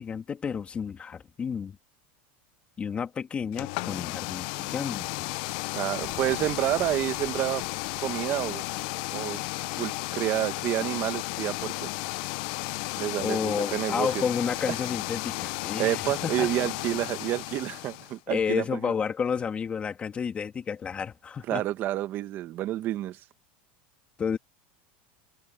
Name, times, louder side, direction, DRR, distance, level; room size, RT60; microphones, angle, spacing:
voice 1, 0.0-1.8 2.8-5.3 13.2-16.5 18.3-21.6 24.2-24.4, left 6 dB, 20° left, 2.3 m, -31 dB
sound 1, 3.5-18.2, left 26 dB, 60° left, 0.4 m, -34 dB
voice 2, 5.7-7.6 8.0-8.6 9.1-9.4 9.8-11.9 13.0-14.2 14.7-14.8 15.8-18.9 21.5-23.2, right 14 dB, 40° right, 1.4 m, -29 dB
sound 2, 6.0-12.4, right 1 dB, 5° right, 5.3 m, -53 dB
supercardioid pair, 135°, 5 cm